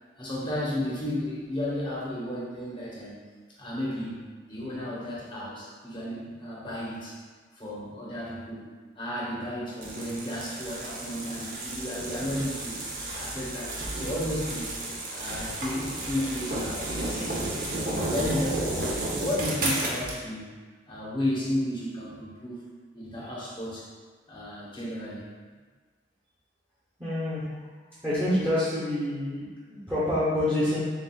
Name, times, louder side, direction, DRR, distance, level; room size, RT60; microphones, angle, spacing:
voice 1, 0.2-3.1 3.6-7.2 7.5-8.6 8.9-12.8 13.1-14.8 15.1-17.3 17.7-20.5 20.9-22.6 22.9-23.9 24.3-25.3, left 1 dB, 25° left, -6 dB, 0.9 m, -33 dB
sound 1, 9.8-20.2, right 1 dB, 50° right, 0.7 m, -32 dB
voice 2, 27.0-27.4 28.0-30.8, left 1 dB, 10° right, -12 dB, 0.9 m, -27 dB
7.0 x 2.5 x 2.3 m, 1.4 s
head